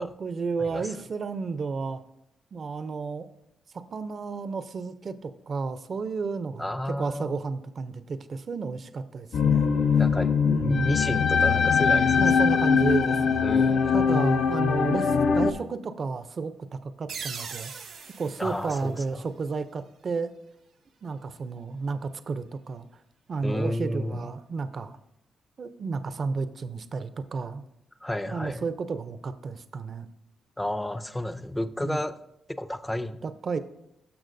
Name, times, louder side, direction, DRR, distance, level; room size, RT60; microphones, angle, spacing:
voice 1, 0.0-2.0 2.5-3.3 3.7-9.7 10.5-10.9 12.1-13.4 13.9-17.7 18.2-20.3 21.0-23.0 23.3-25.0 25.6-27.6 28.3-30.1 31.8-32.0 33.2-33.6, right 4 dB, 50° right, 12 dB, 0.5 m, -32 dB
voice 2, 0.6-0.9 6.6-7.4 10.0-10.3 10.6-12.3 13.4-13.9 18.4-19.2 23.4-24.3 28.0-28.7 30.6-32.2 32.5-33.2, left 1 dB, 10° left, 13 dB, 0.4 m, -31 dB
sound 1, 9.3-15.5, left 6 dB, 70° left, 0.6 m, -22 dB
sound 2, 17.1-19.7, right 6 dB, 85° right, 1.3 m, -41 dB
13.0 x 6.0 x 2.6 m, 0.82 s
cardioid pair, 85°, 0 cm